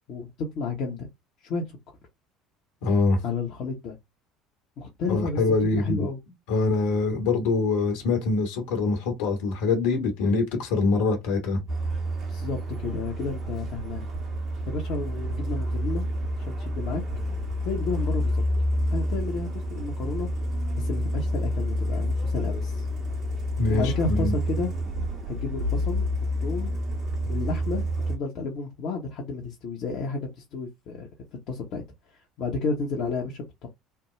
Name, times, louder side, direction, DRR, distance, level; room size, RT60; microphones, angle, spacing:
voice 1, 0.5-1.1 1.4-1.8 3.2-4.0 4.8-5.4 5.7-6.2 12.3-14.1 14.7-16.1 16.5-17.0 17.6-18.4 18.9-20.3 20.7-22.8 23.7-24.7 25.2-26.0 26.4-26.8 27.3-31.1 31.5-31.8 32.4-33.7, left 3 dB, 55° left, 1.0 m, -31 dB
voice 2, 2.8-3.2 5.1-6.1 6.5-11.6 23.6-24.3, left 3 dB, 70° left, 1.4 m, -24 dB
Truck, 11.7-28.2, equal, 45° right, 1.4 m, -28 dB
3.4 x 2.3 x 3.0 m
hypercardioid pair, 65°, 0 cm